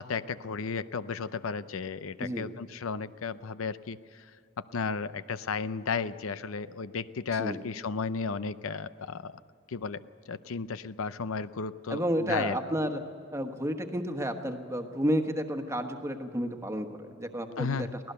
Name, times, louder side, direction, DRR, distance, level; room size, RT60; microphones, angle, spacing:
voice 1, 0.0-4.2 4.6-9.4 9.7-10.0 10.3-12.6 17.6-18.0, left 5 dB, 80° left, 14 dB, 0.6 m, -34 dB
voice 2, 7.3-7.6 11.9-13.0 13.3-17.9, equal, 15° right, 6 dB, 1.3 m, -31 dB
24.0 x 17.0 x 6.8 m, 2.5 s
head